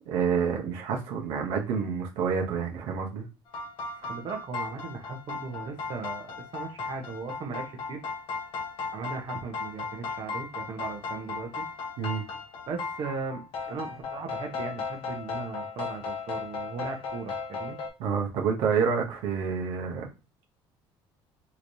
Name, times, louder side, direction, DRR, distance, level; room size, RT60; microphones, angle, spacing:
voice 1, 0.1-3.3 12.0-12.2 18.0-20.1, right 6 dB, 85° right, 0.8 m, -28 dB
sound 1, 3.5-17.9, left 5 dB, 65° left, 0.9 m, -36 dB
voice 2, 4.0-8.0 8.9-11.7 12.7-17.8, right 5 dB, 55° right, 0.8 m, -38 dB
3.2 x 2.8 x 2.6 m
cardioid pair, 105°, 10 cm